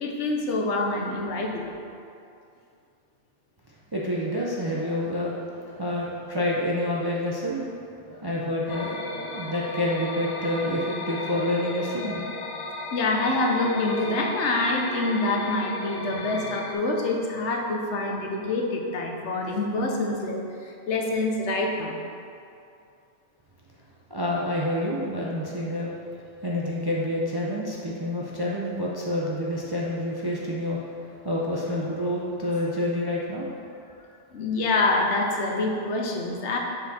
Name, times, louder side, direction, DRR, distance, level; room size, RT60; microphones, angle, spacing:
voice 1, 0.0-1.6 12.9-21.9 34.3-36.6, left 2 dB, 70° left, 1 dB, 1.0 m, -26 dB
voice 2, 3.9-7.7 8.0-12.2 24.1-25.9 26.4-30.9 31.2-33.5, left 1 dB, 30° right, -4 dB, 0.4 m, -28 dB
sound 1, 8.7-16.7, left 2 dB, 50° left, 0.5 m, -35 dB
6.8 x 4.4 x 4.1 m, 2.5 s
omnidirectional pair, 1.2 m